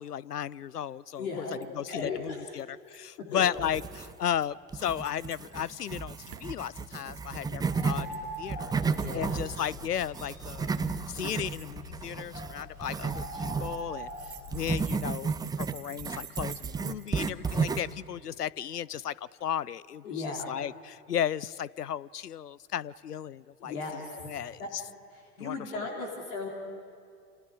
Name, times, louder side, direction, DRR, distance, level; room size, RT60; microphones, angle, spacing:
voice 1, 0.0-1.5 1.7-8.7 9.1-10.7 11.1-24.8 25.4-25.8, left 9 dB, 90° left, 23 dB, 0.5 m, -35 dB
voice 2, 1.2-1.5 1.9-2.4 3.3-3.4 9.0-9.5 20.0-20.5 23.6-24.3 24.6-24.7 25.1-26.5, left 3 dB, 65° left, 0 dB, 3.5 m, -36 dB
sound 1, 1.2-1.3 1.4-1.6 2.6-3.2 3.7-4.1 4.9-5.7 6.2-6.5 7.6-8.4 8.9-9.2 10.4-10.9 11.4-11.7 12.9-13.7 14.0-17.1, right 11 dB, 70° right, 1.2 m, -49 dB
sound 2, 3.5-4.4 4.7-8.1 8.4-13.8 14.5-18.0, right 5 dB, 10° right, 0.6 m, -33 dB
Bird, 7.7-14.8, equal, 40° left, 6.5 m, -43 dB
28.5 x 28.5 x 4.8 m, 2.3 s
figure-of-eight pair, 90°, 46 cm